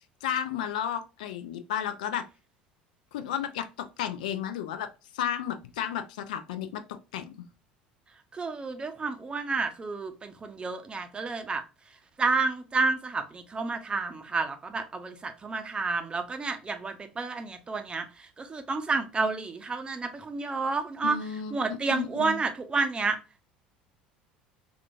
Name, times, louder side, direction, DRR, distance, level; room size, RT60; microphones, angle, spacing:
voice 1, 0.2-2.2 3.1-4.9 5.1-6.8 7.1-7.3 21.0-21.6 21.9-22.4, left 9 dB, 65° left, 0.3 m, -32 dB
voice 2, 8.3-11.6 12.2-21.2 21.5-23.2, right 4 dB, 20° right, 0.6 m, -30 dB
3.6 x 2.3 x 2.6 m
figure-of-eight pair, 65°, 5 cm